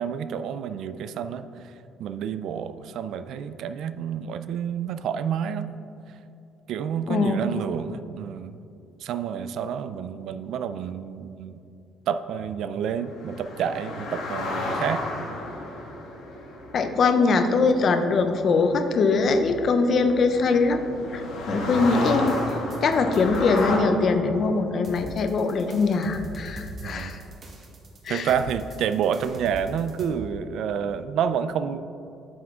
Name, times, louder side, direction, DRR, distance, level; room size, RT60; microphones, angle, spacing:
voice 1, 0.0-1.7 2.0-5.7 6.7-8.6 9.0-11.6 12.1-15.0 21.5-21.8 26.8-27.2 28.1-31.8, right 8 dB, 65° right, 11 dB, 0.3 m, -29 dB
voice 2, 7.1-7.4 16.7-20.8 21.1-22.3 22.8-27.2 28.0-28.3, left 4 dB, 40° left, 7 dB, 0.6 m, -22 dB
sound 1, 13.0-23.8, left 2 dB, 65° left, 1.4 m, -33 dB
sound 2, 22.1-23.6 24.8-30.1, right 1 dB, 35° right, 1.3 m, -41 dB
9.2 x 6.0 x 3.6 m, 2.7 s
cardioid pair, 155°, 0 cm